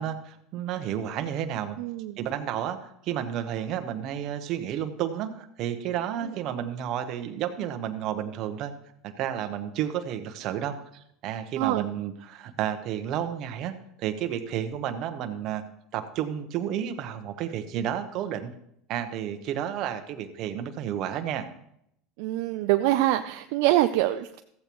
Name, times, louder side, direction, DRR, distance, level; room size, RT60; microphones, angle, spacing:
voice 1, 0.0-1.8 2.2-8.7 9.0-15.6 15.9-18.5 18.9-21.5, right 10 dB, 55° right, 7 dB, 1.0 m, -31 dB
voice 2, 1.8-2.1 11.6-11.8 22.2-24.4, right 15 dB, 70° right, 7 dB, 0.4 m, -24 dB
14.5 x 8.3 x 3.1 m, 0.74 s
supercardioid pair, 110°, 0 cm